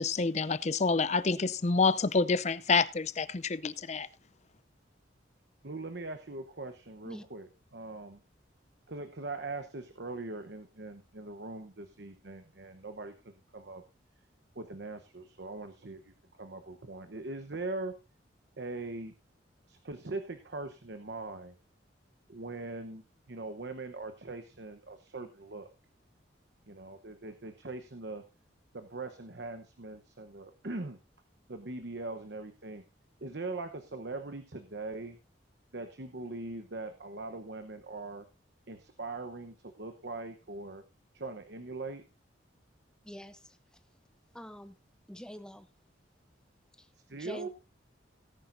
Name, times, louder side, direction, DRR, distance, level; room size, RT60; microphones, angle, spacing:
voice 1, 0.0-4.1, left 4 dB, 35° left, 0.5 m, -28 dB
voice 2, 5.6-8.2 8.9-13.1 13.5-13.8 14.5-17.9 18.6-19.1 19.7-21.6 22.3-25.7 26.7-28.2 28.7-31.0 31.5-32.8 33.2-35.2 35.7-38.3 38.7-40.8 41.1-42.0 47.1-47.5, right 2 dB, 60° right, 1.0 m, -41 dB
voice 3, 43.1-43.6 44.3-44.7 45.1-45.7 46.8-46.9 47.2-47.5, equal, 5° left, 0.8 m, -45 dB
18.0 x 10.0 x 2.6 m
head